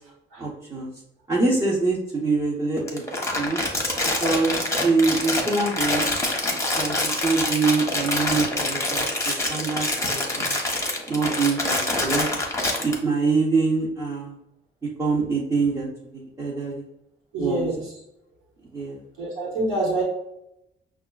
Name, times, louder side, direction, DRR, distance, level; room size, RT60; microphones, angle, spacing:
voice 1, 0.4-0.9 1.3-3.0 3.3-3.6 4.0-6.1 6.8-10.6 11.1-12.3 12.8-14.4 15.0-16.8 17.4-17.7 18.7-19.0, right 3 dB, 15° right, -6 dB, 0.9 m, -25 dB
Crumpling crinkling, 2.9-12.9, left 2 dB, 15° left, 0.9 m, -25 dB
voice 2, 17.3-17.8 19.2-20.0, right 2 dB, 90° right, -5 dB, 1.2 m, -26 dB
5.3 x 2.3 x 2.3 m, 0.83 s
cardioid pair, 90°, 20 cm